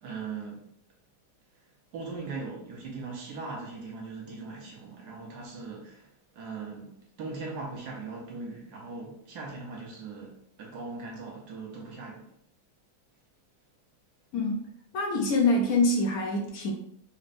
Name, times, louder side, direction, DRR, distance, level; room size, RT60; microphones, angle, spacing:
voice 1, 0.0-0.7 1.9-12.3, right 4 dB, 70° right, 1.4 m, -40 dB
voice 2, 14.3-14.7 14.9-16.7, left 2 dB, 65° left, 1.0 m, -25 dB
4.2 x 3.2 x 2.5 m
omnidirectional pair, 1.9 m